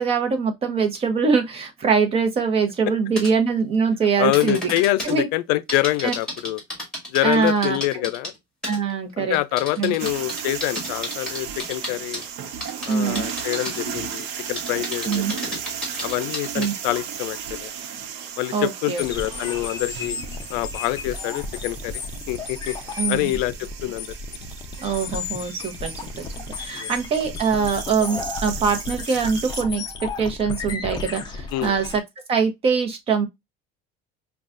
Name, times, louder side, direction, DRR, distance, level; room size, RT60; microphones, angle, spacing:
voice 1, 0.0-4.6 5.1-5.3 6.0-6.1 7.2-7.8 8.6-9.4 9.8-9.9 12.9-13.2 15.1-15.3 16.6-16.7 18.5-19.0 23.0-23.3 24.8-26.3 26.6-29.8 30.2-32.0 32.3-33.3, right 5 dB, 30° right, 0.8 m, -23 dB
sound 1, 3.2-3.3 4.3-5.1 5.7-8.4 8.6-8.9 9.3-12.2 12.6-13.8 14.1-16.7, left 1 dB, 5° left, 2.1 m, -32 dB
voice 2, 4.2-6.6 7.1-8.3 9.2-12.2 12.8-15.6 16.0-17.7 18.4-20.2 20.5-21.9 22.3-22.7 23.1-24.1 26.7-26.9 31.5-31.8, left 16 dB, 85° left, 0.5 m, -25 dB
sound 2, 10.0-29.6, right 8 dB, 65° right, 0.8 m, -35 dB
sound 3, 19.0-32.0, left 3 dB, 20° left, 0.5 m, -33 dB
5.3 x 2.3 x 2.4 m
cardioid pair, 160°, 21 cm